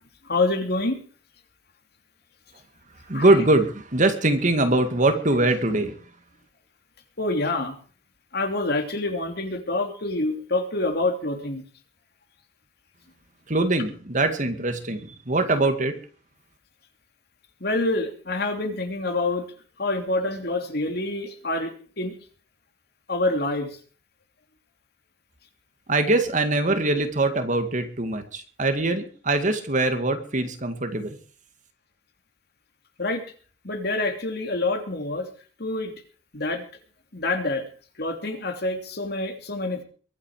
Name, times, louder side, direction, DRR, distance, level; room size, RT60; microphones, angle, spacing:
voice 1, 0.2-1.0 3.1-3.3 7.2-7.7 8.3-11.6 17.6-19.5 19.8-21.7 22.0-22.1 23.1-23.8 33.0-33.2 33.6-35.3 35.6-35.9 36.3-36.6 37.1-37.6 38.0-39.8, left 2 dB, 60° left, 5 dB, 3.1 m, -26 dB
voice 2, 3.1-6.0 13.5-15.9 25.9-31.2, right 2 dB, 45° right, 7 dB, 2.2 m, -22 dB
23.0 x 8.8 x 5.0 m, 0.41 s
head